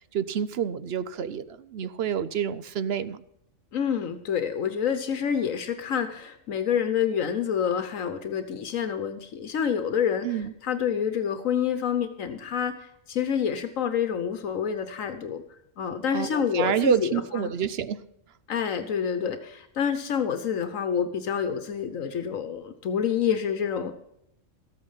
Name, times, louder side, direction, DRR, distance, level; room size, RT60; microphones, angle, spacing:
voice 1, 0.1-3.2 10.2-10.5 16.1-18.0, right 8 dB, 60° right, 14 dB, 0.8 m, -28 dB
voice 2, 3.7-10.3 10.6-15.4 15.8-17.5 18.5-23.9, left 8 dB, 80° left, 9 dB, 1.3 m, -28 dB
13.5 x 8.7 x 5.6 m, 0.76 s
omnidirectional pair, 1.4 m